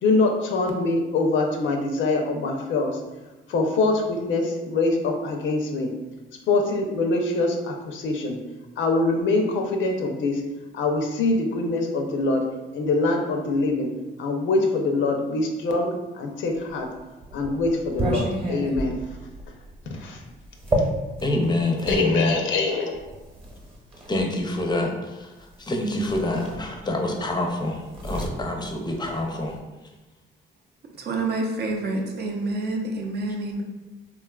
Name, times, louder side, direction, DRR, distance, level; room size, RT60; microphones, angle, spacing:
voice 1, 0.0-3.0 3.5-6.0 6.5-8.4 8.8-10.4 10.7-16.9 17.3-19.0 19.9-20.2 20.8-20.9 21.9-23.0, left 3 dB, 75° left, 3 dB, 0.5 m, -24 dB
sound 1, 16.7-22.1 22.9-24.3 25.5-25.7 26.0-27.1 27.4-29.6, right 1 dB, 25° right, 0.9 m, -31 dB
voice 2, 21.2-22.4 24.1-29.6, left 1 dB, 20° left, 2 dB, 0.5 m, -26 dB
voice 3, 31.0-33.6, right 2 dB, 55° right, 2 dB, 0.5 m, -28 dB
3.6 x 2.3 x 2.3 m, 1.1 s
cardioid pair, 90°, 20 cm